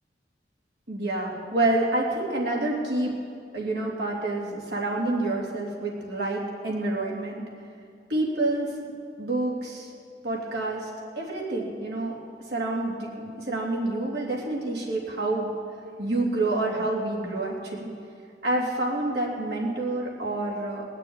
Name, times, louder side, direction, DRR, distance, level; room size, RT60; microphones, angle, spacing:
voice 1, 0.9-3.1 3.5-7.4 8.1-8.7 9.2-9.9 10.2-10.9 11.2-12.1 12.5-15.5 16.0-17.9 18.4-20.9, right 2 dB, 70° right, -3 dB, 2.9 m, -28 dB
20.0 x 6.8 x 9.7 m, 2.4 s
head